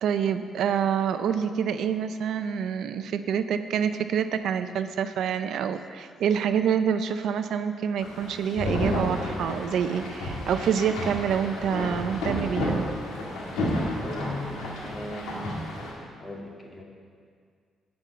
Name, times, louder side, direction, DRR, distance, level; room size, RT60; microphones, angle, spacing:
voice 1, 0.0-12.9, right 8 dB, 75° right, 10 dB, 0.5 m, -27 dB
sound 1, 8.0-15.9, left 1 dB, 90° left, 2.3 m, -31 dB
voice 2, 13.8-15.6 16.2-16.8, left 1 dB, 25° left, -1 dB, 2.1 m, -38 dB
11.5 x 5.3 x 8.4 m, 2.1 s
cardioid pair, 90°, 0 cm